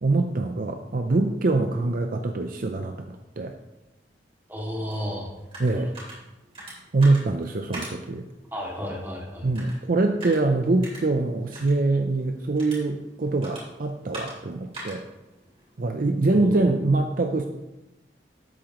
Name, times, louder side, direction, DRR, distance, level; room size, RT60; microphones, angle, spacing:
voice 1, 0.0-3.6 5.6-5.9 6.9-8.3 9.4-15.0 15.8-17.5, right 2 dB, 50° right, 6 dB, 0.5 m, -24 dB
voice 2, 4.5-5.3 8.5-9.5 16.4-16.7, equal, 10° right, -3 dB, 2.1 m, -32 dB
sound 1, 4.9-16.6, right 1 dB, 35° right, 3.4 m, -44 dB
12.0 x 8.7 x 3.0 m, 0.97 s
head